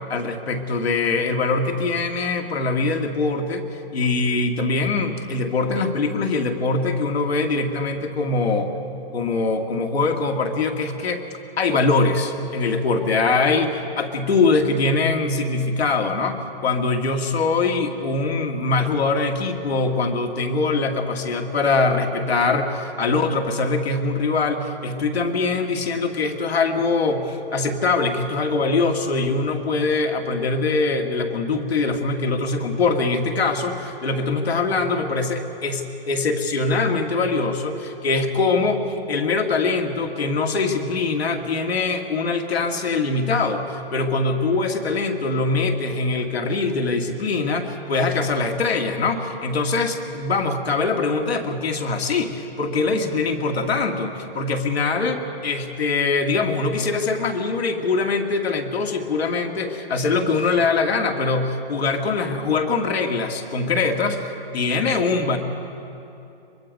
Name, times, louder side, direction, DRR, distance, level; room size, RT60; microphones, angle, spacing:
voice 1, 0.1-3.7 3.9-8.7 9.1-11.2 11.6-64.3 64.5-65.4, left 3 dB, 75° left, 4 dB, 2.2 m, -23 dB
23.5 x 21.5 x 5.3 m, 2.8 s
hypercardioid pair, 165°, 31 cm